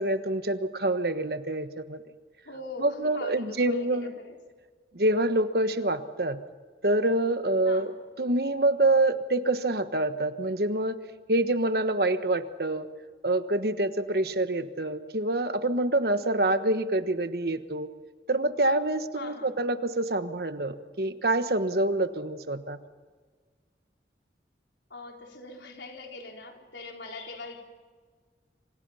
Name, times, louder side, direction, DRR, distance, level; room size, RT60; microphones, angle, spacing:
voice 1, 0.0-2.0 2.8-4.1 4.9-6.4 6.8-7.9 8.2-11.0 11.3-12.9 13.2-17.9 18.3-22.8, right 2 dB, 60° right, 10 dB, 1.3 m, -26 dB
voice 2, 2.4-4.4 7.7-8.0 19.1-19.6 24.9-27.6, left 2 dB, 80° left, 2 dB, 4.1 m, -42 dB
27.0 x 26.5 x 5.7 m, 1.5 s
head